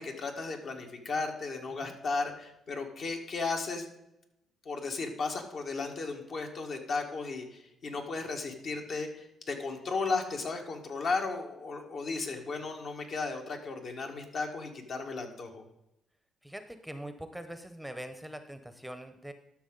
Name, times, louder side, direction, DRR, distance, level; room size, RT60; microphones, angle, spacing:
voice 1, 0.0-3.9 4.7-15.6, left 3 dB, 60° left, 3 dB, 1.7 m, -35 dB
voice 2, 16.4-19.3, right 1 dB, ahead, 8 dB, 0.7 m, -43 dB
12.5 x 6.1 x 3.9 m, 0.85 s
cardioid pair, 90°, 0 cm